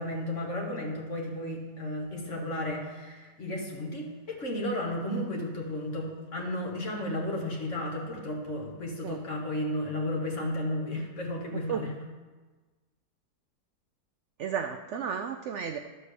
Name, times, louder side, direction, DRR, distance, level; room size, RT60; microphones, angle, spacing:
voice 1, 0.0-12.0, left 1 dB, 45° left, -1 dB, 1.8 m, -33 dB
voice 2, 11.5-11.9 14.4-15.8, right 7 dB, 80° right, 6 dB, 0.6 m, -33 dB
12.5 x 4.4 x 6.8 m, 1.3 s
omnidirectional pair, 1.8 m